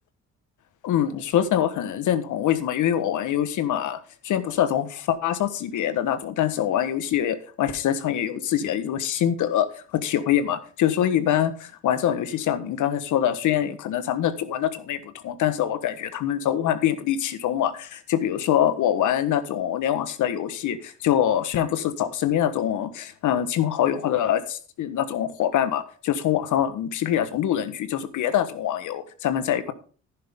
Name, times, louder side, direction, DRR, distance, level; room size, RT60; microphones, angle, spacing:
voice 1, 0.8-29.7, left 10 dB, 80° left, 12 dB, 1.4 m, -24 dB
11.0 x 10.5 x 3.7 m, 0.39 s
cardioid pair, 90°, 30 cm